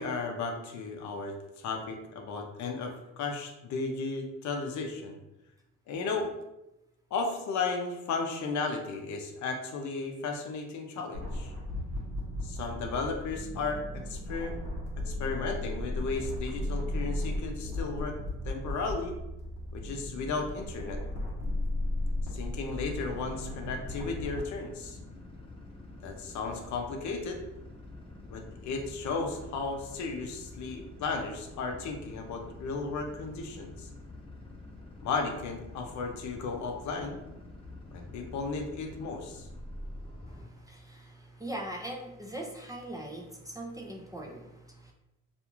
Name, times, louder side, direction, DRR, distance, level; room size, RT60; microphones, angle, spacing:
voice 1, 0.0-5.2 5.9-6.3 7.1-11.5 12.4-14.7 15.1-18.2 18.5-19.2 19.7-21.0 22.3-25.0 26.0-27.4 28.3-33.9 35.0-37.2 37.9-39.5, left 4 dB, 70° left, 3 dB, 0.5 m, -34 dB
sound 1, 11.1-24.4, left 1 dB, 85° right, 0.9 m, -35 dB
sound 2, 23.0-40.4, left 2 dB, 20° left, 0.7 m, -47 dB
voice 2, 40.3-44.9, right 1 dB, 10° right, -1 dB, 0.3 m, -41 dB
2.4 x 2.3 x 2.9 m, 0.92 s
cardioid pair, 90°, 30 cm